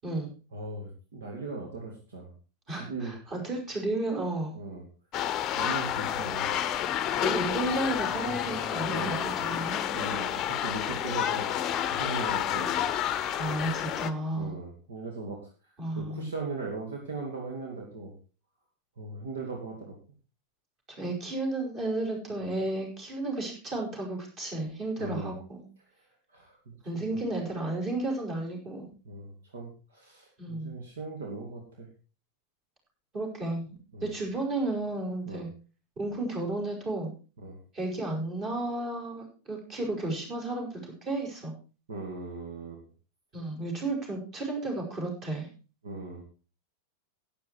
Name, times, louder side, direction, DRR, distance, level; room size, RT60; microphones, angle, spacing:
voice 1, 0.5-2.3 2.7-3.2 4.5-4.8 5.6-6.6 8.9-9.4 9.9-11.5 11.9-12.8 14.4-15.5 15.9-18.1 19.0-20.0 22.4-22.5 25.0-25.3 26.3-27.2 29.0-31.9 33.9-34.2 35.3-35.5 37.4-37.6 41.9-42.8 45.8-46.2, right 3 dB, 65° right, 0 dB, 2.8 m, -39 dB
voice 2, 2.7-4.6 7.2-9.8 13.4-14.6 15.8-16.3 20.9-25.6 26.8-28.9 30.4-30.7 33.1-35.5 36.0-37.1 37.7-41.5 43.3-45.5, right 2 dB, 30° right, 1 dB, 5.5 m, -33 dB
sound 1, 5.1-14.1, left 10 dB, 30° left, 0.8 m, -30 dB
11.5 x 10.0 x 4.6 m, 0.35 s
figure-of-eight pair, 90°, 0 cm